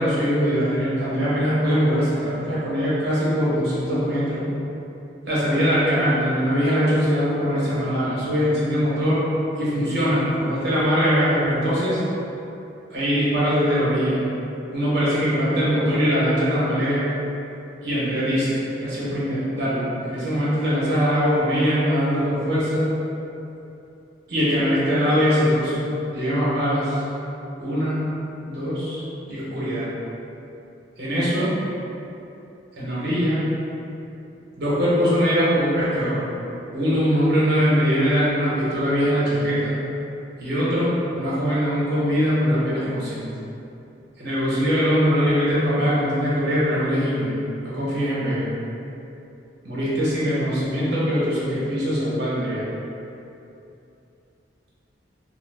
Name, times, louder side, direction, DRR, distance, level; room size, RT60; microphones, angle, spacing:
voice 1, 0.0-4.5 5.3-9.2 9.6-12.0 12.9-14.2 14.7-17.0 17.8-22.9 24.3-25.8 26.1-27.0 27.6-28.1 28.5-29.0 29.3-29.9 31.0-31.5 32.8-33.4 34.6-36.2 36.7-39.8 40.4-43.3 44.2-47.4 47.6-48.5 49.6-52.6, equal, 60° right, -8 dB, 0.9 m, -22 dB
2.9 x 2.0 x 3.2 m, 2.8 s
head